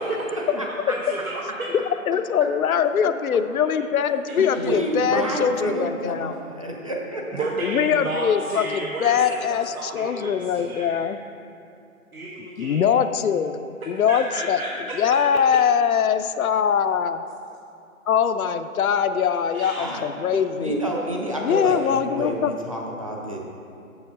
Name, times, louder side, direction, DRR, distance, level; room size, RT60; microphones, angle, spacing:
voice 1, 0.0-0.6 0.9-1.7 3.7-3.8 4.3-4.6 7.3-11.1 12.1-12.9 14.1-15.0 19.5-19.9, right 2 dB, 80° right, -2 dB, 1.1 m, -32 dB
voice 2, 0.6-1.0 4.4-7.4 19.8-20.0 20.6-23.4, right 1 dB, 25° right, -2 dB, 0.6 m, -29 dB
voice 3, 2.1-6.4 7.6-11.2 12.6-14.6 14.9-17.2 18.1-20.8 21.4-22.5, left 7 dB, 75° left, 10 dB, 0.6 m, -22 dB
7.0 x 6.5 x 5.3 m, 2.6 s
hypercardioid pair, 165°, 43 cm